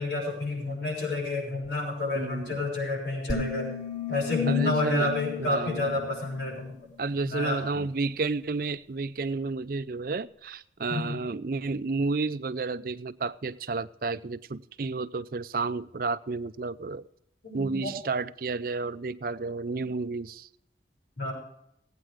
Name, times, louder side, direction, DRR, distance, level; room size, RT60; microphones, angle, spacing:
voice 1, 0.0-3.7 4.1-6.7 7.2-7.6 10.9-11.2 17.4-17.9 19.8-19.9 21.2-21.3, left 2 dB, 80° left, -2 dB, 6.2 m, -29 dB
voice 2, 2.1-2.6 4.5-5.1 5.4-5.9 7.0-17.0 17.5-20.5, right 3 dB, 50° right, 15 dB, 0.5 m, -31 dB
sound 1, 3.3-6.6, left 7 dB, 40° left, 2.1 m, -34 dB
17.0 x 9.0 x 4.9 m, 0.74 s
head